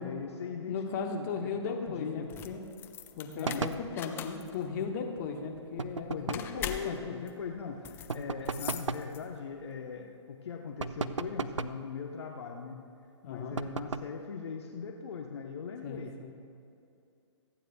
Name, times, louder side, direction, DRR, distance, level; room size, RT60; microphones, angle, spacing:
voice 1, 0.0-1.3 1.6-2.3 3.3-3.6 6.1-12.8 13.2-16.3, left 6 dB, 60° left, 2 dB, 1.0 m, -40 dB
voice 2, 0.7-2.6 3.1-7.2 13.2-13.6 15.8-16.3, left 5 dB, 40° left, 2 dB, 1.3 m, -37 dB
sound 1, 2.2-9.5, left 9 dB, 15° left, 0.4 m, -43 dB
sound 2, 3.4-3.9 5.8-6.6 8.1-9.1 10.8-11.8 13.6-14.2, right 4 dB, 85° right, 0.5 m, -35 dB
27.0 x 9.1 x 2.3 m, 2.6 s
figure-of-eight pair, 125°, 15 cm